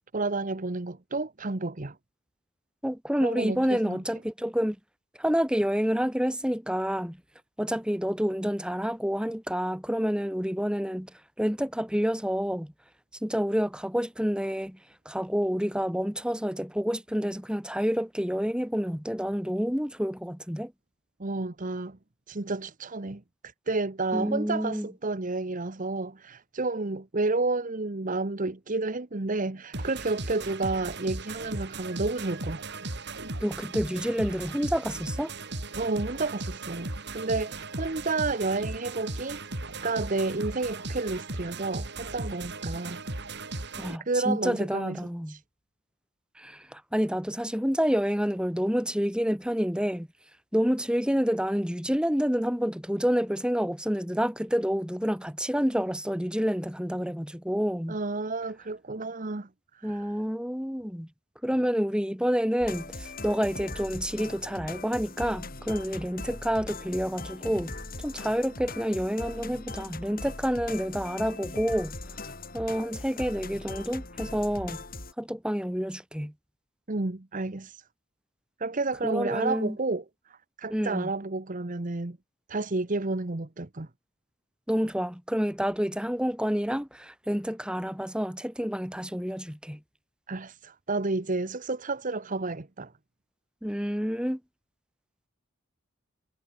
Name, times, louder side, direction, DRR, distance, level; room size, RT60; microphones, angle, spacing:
voice 1, 0.1-2.0 3.2-4.0 21.2-22.0 22.3-23.2 23.7-32.6 35.7-39.4 39.8-43.0 44.0-45.4 57.9-60.1 76.9-77.8 78.6-82.2 82.5-83.9 90.3-92.9, right 3 dB, 40° right, 1.1 m, -31 dB
voice 2, 2.8-4.8 5.2-7.2 7.6-11.1 11.4-12.7 13.2-14.8 15.1-20.7 24.1-24.9 33.4-35.3 43.8-45.4 46.4-50.1 50.5-58.0 59.8-61.1 61.4-72.0 72.5-74.8 75.2-76.3 79.0-79.8 80.7-81.1 84.7-89.8 93.6-94.4, equal, 5° right, 3.9 m, -28 dB
sound 1, 29.7-44.0, right 2 dB, 55° right, 4.3 m, -37 dB
sound 2, 62.6-75.1, left 2 dB, 45° left, 7.6 m, -40 dB
head